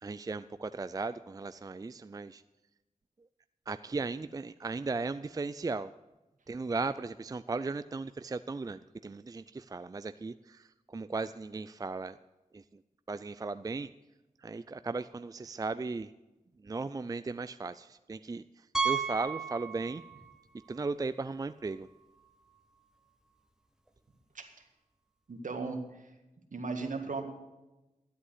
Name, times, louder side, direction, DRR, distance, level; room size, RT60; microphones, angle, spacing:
voice 1, 0.0-2.4 3.7-5.9 6.5-12.2 12.5-12.6 13.1-13.9 14.4-16.1 16.6-18.4 18.8-20.0 20.7-21.9, right 3 dB, 25° right, 13 dB, 0.4 m, -36 dB
Piano, 18.7-20.3 20.6-20.8 21.4-21.5 21.7-21.8 23.9-24.0, right 5 dB, 5° right, 1.2 m, -33 dB
voice 2, 25.3-26.0 26.5-27.3, right 4 dB, 65° right, 5 dB, 1.9 m, -36 dB
12.5 x 8.2 x 8.1 m, 1.0 s
cardioid pair, 55°, 14 cm